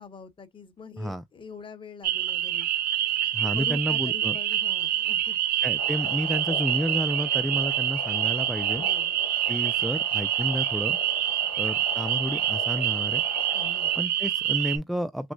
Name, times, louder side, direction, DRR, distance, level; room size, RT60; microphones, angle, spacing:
voice 1, 0.0-2.7 3.5-5.4 8.7-9.1 13.5-13.9, left 4 dB, 30° left, 1.3 m, -44 dB
sound 1, 2.0-14.8, right 11 dB, 60° right, 0.7 m, -26 dB
voice 2, 3.3-4.4 5.6-8.8 9.5-11.0 11.6-13.2 14.0-15.3, equal, ahead, 0.3 m, -30 dB
sound 2, 5.8-14.0, left 7 dB, 85° left, 1.2 m, -41 dB
6.1 x 2.0 x 2.5 m
cardioid pair, 110°, 17 cm